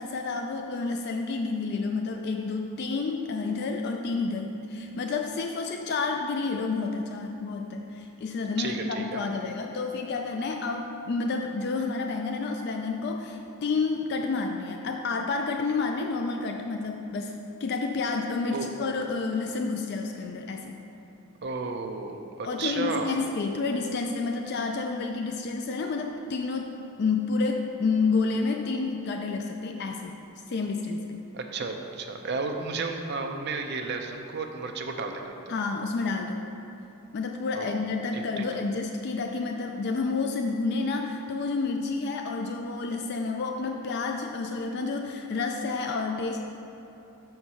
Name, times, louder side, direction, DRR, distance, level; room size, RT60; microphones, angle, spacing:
voice 1, 0.0-17.4 17.6-20.7 22.4-30.2 30.5-31.2 35.5-36.4 37.1-46.4, left 4 dB, 50° left, 3 dB, 0.3 m, -30 dB
voice 2, 8.6-9.2 18.5-18.7 21.4-23.2 31.3-35.5 37.5-37.8 38.1-38.5, right 4 dB, 50° right, 4 dB, 0.5 m, -33 dB
6.4 x 4.5 x 5.5 m, 2.9 s
head